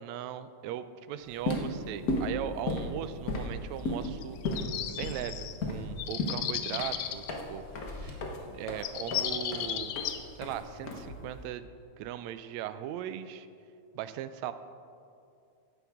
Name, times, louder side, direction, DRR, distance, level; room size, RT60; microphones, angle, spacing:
voice 1, 0.0-4.4 4.9-7.6 8.0-8.2 8.5-10.0 10.4-11.7 12.0-13.5 14.0-14.5, right 11 dB, 80° right, 12 dB, 1.8 m, -38 dB
sound 1, 1.3-11.5, left 2 dB, 55° left, 1.0 m, -35 dB
sound 2, 4.0-5.6 6.0-7.3 8.5-8.6 8.8-10.2, left 11 dB, 75° left, 1.9 m, -35 dB
sound 3, 6.3-8.1, left 3 dB, 20° left, 0.9 m, -50 dB
15.5 x 11.0 x 3.6 m, 2.5 s
omnidirectional pair, 3.4 m